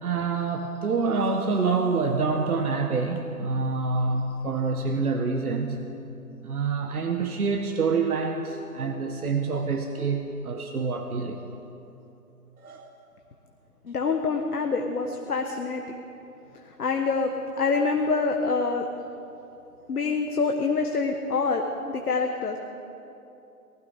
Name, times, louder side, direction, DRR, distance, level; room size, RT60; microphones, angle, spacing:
voice 1, 0.0-5.8 6.4-11.4 12.6-12.9, right 4 dB, 65° right, 5 dB, 1.3 m, -27 dB
voice 2, 13.8-15.8 16.8-18.9 19.9-22.6, left 4 dB, 70° left, 4 dB, 1.4 m, -26 dB
19.5 x 15.0 x 5.0 m, 2.8 s
figure-of-eight pair, 135°, 46 cm